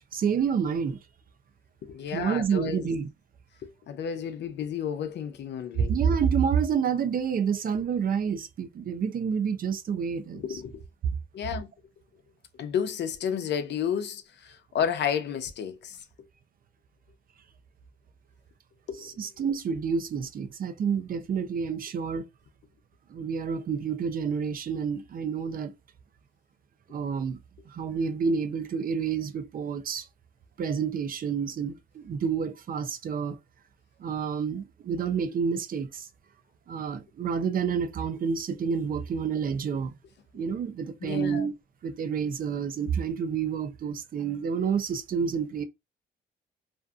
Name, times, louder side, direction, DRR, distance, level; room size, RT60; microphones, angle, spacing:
voice 1, 0.1-1.0 2.1-3.1 5.8-10.6 11.1-11.2 19.0-22.3 23.1-25.7 26.9-27.4 27.7-30.1 30.6-33.4 34.0-36.1 36.7-40.0 40.3-41.6 41.8-45.6, right 6 dB, 45° right, 0.5 m, -29 dB
voice 2, 1.8-2.9 3.6-5.9 10.3-10.8 11.3-11.7 12.5-16.0 18.9-19.1 41.0-41.5, left 8 dB, 65° left, 0.6 m, -32 dB
2.5 x 2.4 x 2.3 m
cardioid pair, 90°, 20 cm